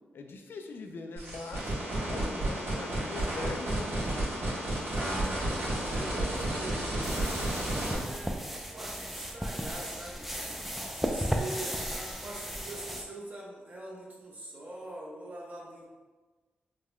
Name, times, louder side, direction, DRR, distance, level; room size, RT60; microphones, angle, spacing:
voice 1, 0.1-1.7 2.1-4.2, left 3 dB, 70° left, 4 dB, 0.3 m, -41 dB
sound 1, 1.2-7.9, right 1 dB, 65° right, 1.4 m, -32 dB
voice 2, 2.7-3.2 5.2-10.3 10.9-15.9, right 1 dB, 40° right, -3 dB, 0.9 m, -43 dB
sound 2, 7.0-13.0, equal, 5° right, 0.4 m, -35 dB
3.7 x 2.2 x 3.1 m, 1.3 s
cardioid pair, 60°, 4 cm